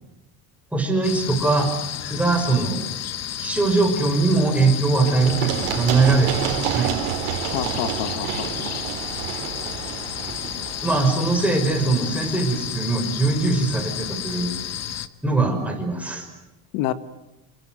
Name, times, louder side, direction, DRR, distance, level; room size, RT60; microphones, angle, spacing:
voice 1, 0.7-1.7 2.1-2.9 3.4-6.9 10.8-14.5 15.2-16.3, right 3 dB, 5° right, 3 dB, 5.7 m, -21 dB
sound 1, 1.0-15.1, left 11 dB, 35° left, 1.2 m, -32 dB
Run, 5.0-12.7, right 12 dB, 85° right, 4.3 m, -30 dB
voice 2, 7.3-8.7 16.7-16.9, left 13 dB, 85° left, 12 dB, 1.8 m, -28 dB
28.5 x 24.5 x 7.8 m, 0.94 s
cardioid pair, 160°, 45 cm